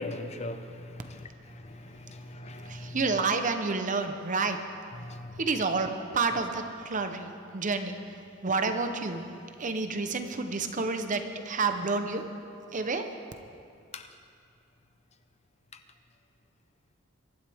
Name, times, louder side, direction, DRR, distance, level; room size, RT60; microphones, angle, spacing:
voice 1, 0.0-3.0 4.9-5.4 13.9-14.1, left 2 dB, 35° left, 8 dB, 0.7 m, -40 dB
voice 2, 2.6-4.6 5.3-8.0 8.4-9.3 9.6-12.3 12.7-13.1, right 4 dB, 40° right, 7 dB, 0.9 m, -29 dB
23.0 x 12.0 x 3.6 m, 2.4 s
head